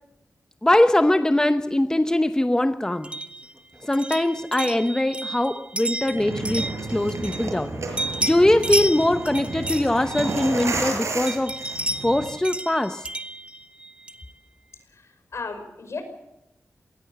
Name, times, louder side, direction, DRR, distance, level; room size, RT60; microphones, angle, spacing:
voice 1, 0.6-3.1 3.8-7.8 8.2-11.6 12.0-13.1, left 1 dB, 15° left, 9 dB, 0.9 m, -22 dB
sound 1, 3.0-7.7 8.0-10.9 11.3-14.3, right 1 dB, 20° right, 1.4 m, -32 dB
sound 2, 6.1-12.2, right 3 dB, 65° right, 6.3 m, -31 dB
voice 2, 14.9-16.0, left 4 dB, 65° left, 7 dB, 5.4 m, -35 dB
20.5 x 19.0 x 7.9 m, 0.89 s
wide cardioid pair, 95°, 5 cm